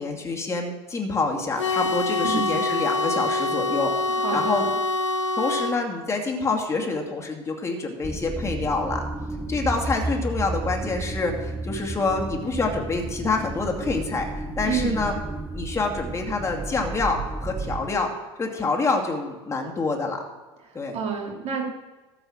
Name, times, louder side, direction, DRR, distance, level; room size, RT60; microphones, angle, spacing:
voice 1, 0.0-3.9 4.3-4.7 5.4-9.0 9.5-15.2 15.5-18.1 18.4-20.2 20.7-21.0, left 3 dB, 20° left, 0 dB, 2.4 m, -27 dB
sound 1, 1.6-5.8, left 3 dB, 90° left, 0.7 m, -25 dB
voice 2, 2.2-2.6 4.2-4.7 14.6-15.0 20.9-21.6, right 6 dB, 45° right, -1 dB, 4.1 m, -28 dB
sound 2, 8.0-17.9, right 2 dB, 10° right, 0.9 m, -32 dB
13.5 x 5.6 x 7.5 m, 1.2 s
hypercardioid pair, 85°, 15 cm